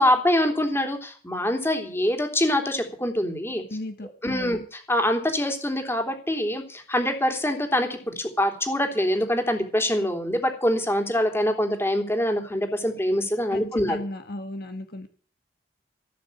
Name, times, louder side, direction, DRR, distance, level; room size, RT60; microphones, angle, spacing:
voice 1, 0.0-3.6 4.2-14.0, left 1 dB, 15° left, 5 dB, 3.2 m, -24 dB
voice 2, 3.7-4.6 13.5-15.1, left 1 dB, 60° left, 7 dB, 1.4 m, -35 dB
17.0 x 7.0 x 8.5 m, 0.40 s
head